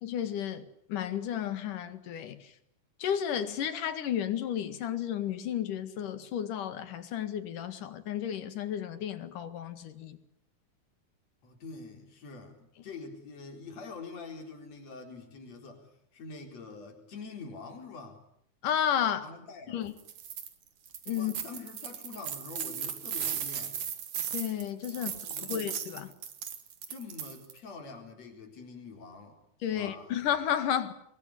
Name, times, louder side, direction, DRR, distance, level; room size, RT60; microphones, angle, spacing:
voice 1, 0.0-2.4 3.0-10.2 18.6-19.3 19.7-19.9 21.1-21.3 24.3-25.1 25.4-26.1 29.6-30.9, left 9 dB, 85° left, 3.5 m, -32 dB
voice 2, 11.4-18.2 19.2-19.9 21.1-23.8 24.9-25.7 26.9-29.4 29.7-30.2, left 4 dB, 55° left, 5.4 m, -45 dB
sound 1, 20.0-20.5 20.9-27.6, right 9 dB, 80° right, 3.8 m, -37 dB
26.5 x 21.5 x 9.9 m
omnidirectional pair, 3.6 m